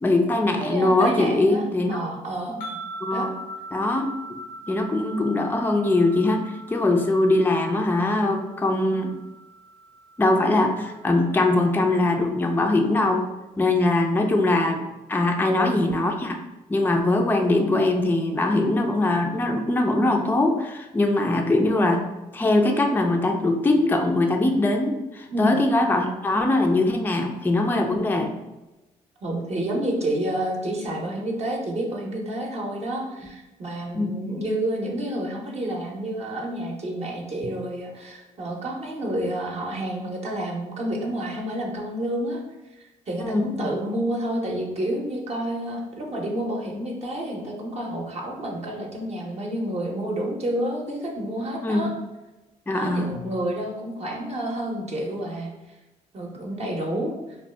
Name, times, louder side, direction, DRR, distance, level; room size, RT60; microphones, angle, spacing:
voice 1, 0.0-2.0 2.5-2.6 3.0-3.3 3.7-4.4 4.7-9.1 10.2-13.2 13.6-14.8 15.1-16.4 16.7-22.1 22.3-28.3 33.9-34.2 40.0-40.1 43.2-43.6 51.6-51.9 52.7-53.2, left 2 dB, 10° left, 3 dB, 0.4 m, -22 dB
voice 2, 0.6-2.6 3.1-3.3 15.4-15.8 25.3-25.6 29.2-42.4 42.8-51.9 52.7-55.5 56.1-57.1, right 1 dB, 40° right, -1 dB, 0.7 m, -29 dB
sound 1, 2.6-11.9, right 1 dB, 85° left, 0.7 m, -41 dB
2.6 x 2.2 x 3.2 m, 1.0 s
supercardioid pair, 60°, 16 cm